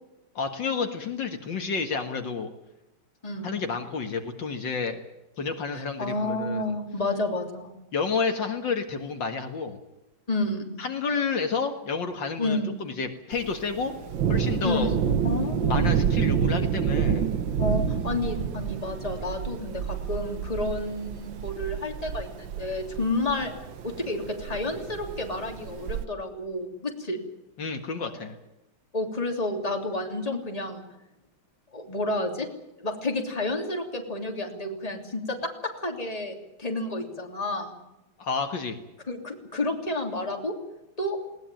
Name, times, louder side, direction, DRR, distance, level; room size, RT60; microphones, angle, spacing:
voice 1, 0.3-2.5 3.4-5.0 5.4-6.7 7.9-9.8 10.8-13.9 14.3-14.9 15.7-17.3 27.6-28.4 38.2-38.8, left 5 dB, 65° left, 5 dB, 2.4 m, -30 dB
voice 2, 5.7-7.7 10.3-10.7 12.4-12.8 14.6-14.9 15.2-15.9 17.6-23.5 23.8-27.2 28.9-30.8 31.7-32.5 32.8-35.4 35.8-37.8 39.1-40.5 41.0-41.2, left 2 dB, 20° left, 3 dB, 3.2 m, -30 dB
Thunder, 13.3-26.0, right 8 dB, 75° right, 1.8 m, -28 dB
20.5 x 19.0 x 9.1 m, 0.94 s
omnidirectional pair, 2.2 m